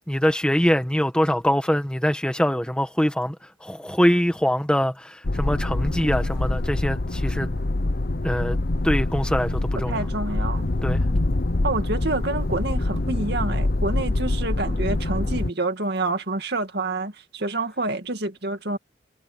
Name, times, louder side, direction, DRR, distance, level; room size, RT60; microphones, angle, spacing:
voice 1, 0.1-3.3 3.6-7.5 8.2-8.6 8.8-10.0 10.8-11.0, equal, 5° left, 1.4 m, -23 dB
sound 1, 5.2-15.5, left 2 dB, 50° left, 0.9 m, -25 dB
voice 2, 9.9-10.7 11.6-18.8, right 2 dB, 55° right, 2.3 m, -28 dB
head